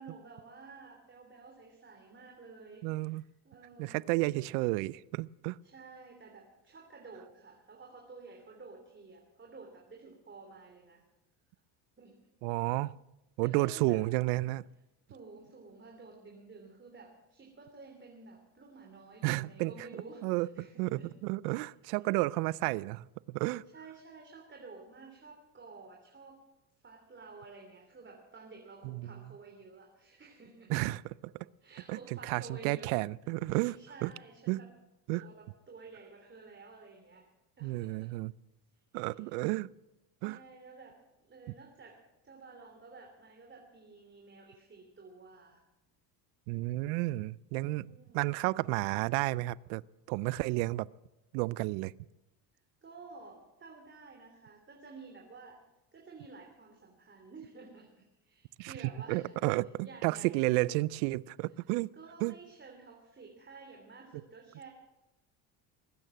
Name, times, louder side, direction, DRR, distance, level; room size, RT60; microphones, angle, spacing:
voice 1, 0.0-4.2 5.6-11.0 12.0-12.3 13.4-14.0 15.1-21.1 23.7-26.4 26.8-30.9 31.6-32.9 33.5-34.7 35.1-37.3 37.6-38.1 39.1-39.3 40.2-45.6 47.7-48.4 52.8-55.6 55.9-59.3 59.8-60.5 61.9-64.7, right 4 dB, 25° right, 1 dB, 3.0 m, -52 dB
voice 2, 2.8-3.2 3.8-5.6 12.4-12.9 13.4-14.6 19.2-19.9 20.2-20.5 20.8-23.6 28.8-29.1 30.7-31.0 31.9-34.1 34.5-34.6 35.1-35.2 37.6-38.3 38.9-39.7 40.2-40.4 46.5-49.8 50.1-50.9 51.3-51.9 58.6-58.7 59.1-61.9 62.2-62.3, right 20 dB, 80° right, 23 dB, 0.5 m, -32 dB
20.0 x 9.1 x 7.6 m, 0.97 s
supercardioid pair, 90°, 44 cm